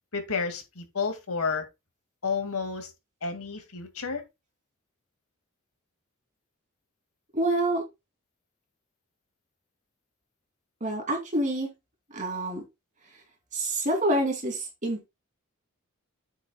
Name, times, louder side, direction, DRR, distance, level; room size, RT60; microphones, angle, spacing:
voice 1, 0.1-1.7 2.2-2.9 3.2-4.2, left 5 dB, 80° left, 2.2 m, -31 dB
voice 2, 7.3-7.8 10.8-11.7 12.1-12.6 13.5-15.1, right 1 dB, 35° right, 2.8 m, -27 dB
9.0 x 7.9 x 2.3 m
head